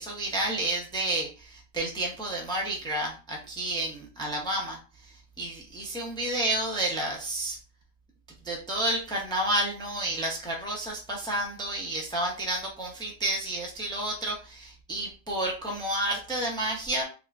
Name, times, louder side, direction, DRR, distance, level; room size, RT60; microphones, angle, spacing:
voice 1, 0.0-4.8 5.0-7.6 8.4-17.0, right 1 dB, 5° left, -1 dB, 0.3 m, -30 dB
3.6 x 3.4 x 2.5 m, 0.34 s
omnidirectional pair, 1.8 m